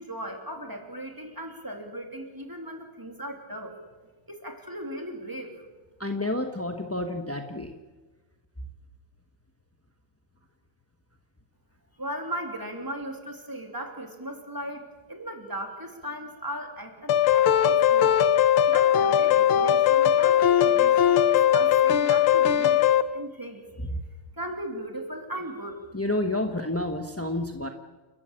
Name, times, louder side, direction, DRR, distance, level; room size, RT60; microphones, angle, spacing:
voice 1, 0.0-3.8 4.3-5.7 12.0-18.1 18.7-22.8 23.1-23.6 24.4-25.8, right 1 dB, 10° right, 3 dB, 3.0 m, -37 dB
voice 2, 6.0-7.7 25.9-27.7, left 1 dB, 15° left, 5 dB, 0.6 m, -29 dB
sound 1, 17.1-23.0, left 10 dB, 80° left, 1.8 m, -20 dB
29.5 x 13.5 x 8.8 m, 1.3 s
omnidirectional pair, 2.3 m